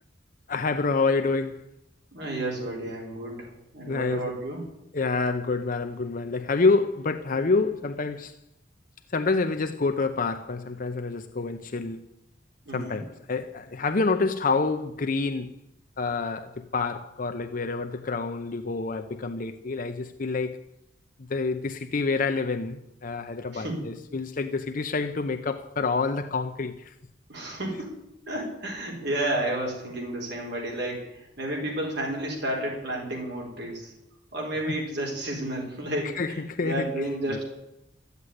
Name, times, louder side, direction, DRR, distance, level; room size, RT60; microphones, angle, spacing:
voice 1, 0.5-1.6 3.8-4.2 4.9-8.3 9.1-12.1 12.7-15.5 16.0-20.6 21.3-26.9 34.6-34.7 36.2-36.9 37.3-37.4, left 4 dB, 45° left, 0.7 m, -27 dB
voice 2, 2.1-4.7 12.7-13.0 23.5-23.8 27.3-27.9 28.3-33.9 34.3-37.4, right 1 dB, 60° right, 4.6 m, -31 dB
13.5 x 8.2 x 9.8 m
head